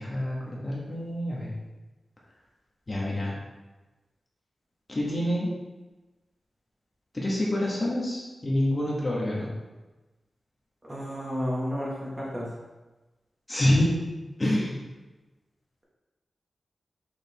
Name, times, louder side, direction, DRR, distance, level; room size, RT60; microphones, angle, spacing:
voice 1, 0.0-1.6 2.9-3.3 4.9-5.5 7.1-9.5 13.5-13.9 14.4-14.8, left 1 dB, 30° left, -5 dB, 1.7 m, -27 dB
voice 2, 10.8-12.5, equal, 25° right, -5 dB, 2.0 m, -32 dB
6.6 x 5.2 x 3.6 m, 1.1 s
wide cardioid pair, 100°, 0 cm